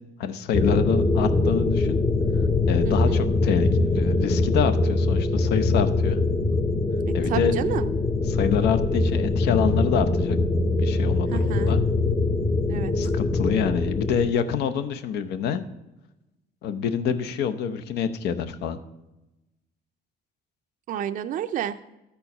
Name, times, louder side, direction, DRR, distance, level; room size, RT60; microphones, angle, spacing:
voice 1, 0.2-2.0 2.7-6.2 7.1-7.5 8.3-10.4 10.7-11.8 13.0-15.6 16.6-18.8, left 7 dB, 75° left, 10 dB, 0.7 m, -26 dB
sound 1, 0.5-14.3, left 3 dB, 20° left, 0.6 m, -23 dB
voice 2, 2.8-3.2 7.1-7.9 11.3-11.8 12.7-12.9 20.9-21.8, right 10 dB, 50° right, 9 dB, 0.4 m, -30 dB
12.5 x 4.5 x 5.4 m, 0.98 s
cardioid pair, 110°, 17 cm